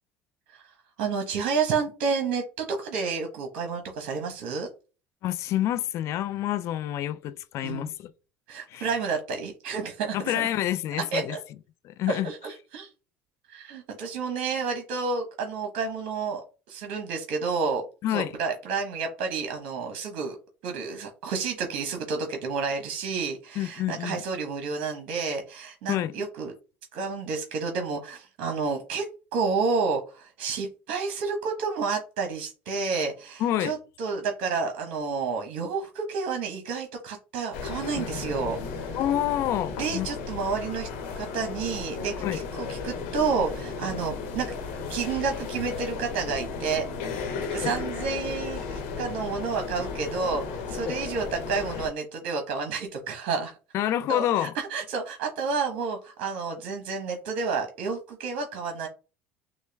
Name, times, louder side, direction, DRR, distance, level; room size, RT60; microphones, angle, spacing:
voice 1, 0.5-4.7 7.6-7.9 8.5-10.5 11.1-11.4 12.1-12.9 13.5-16.4 16.7-20.4 20.6-26.5 26.9-29.1 29.3-39.0 39.8-40.9 41.2-44.5 44.9-46.9 47.4-53.6 54.1-58.9, right 5 dB, 70° right, 1.0 m, -30 dB
voice 2, 5.2-8.1 8.7-8.9 10.1-11.3 11.8-12.3 18.0-18.3 23.6-24.2 25.9-26.2 33.4-33.7 38.9-40.1 42.2-42.4 47.3-47.7 50.9-51.0 53.7-54.5, left 12 dB, 60° left, 0.5 m, -28 dB
sound 1, 37.5-51.9, left 5 dB, 85° left, 1.3 m, -34 dB
6.2 x 2.2 x 3.4 m
supercardioid pair, 85°, 6 cm